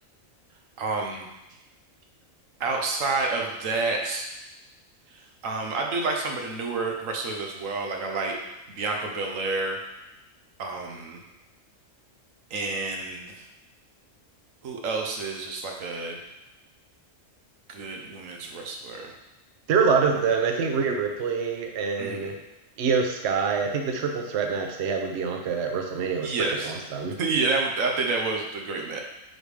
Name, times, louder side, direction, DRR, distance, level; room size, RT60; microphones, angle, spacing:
voice 1, 0.8-1.3 2.6-4.3 5.4-8.4 8.7-9.8 10.6-11.2 12.5-13.3 14.6-16.2 17.7-19.1 22.0-22.3 26.2-26.7 27.2-29.0, right 3 dB, 85° right, 1 dB, 1.2 m, -29 dB
voice 2, 19.7-22.3 22.8-27.2, right 5 dB, 60° right, 3 dB, 0.9 m, -25 dB
6.2 x 3.3 x 4.8 m, 0.98 s
omnidirectional pair, 1.3 m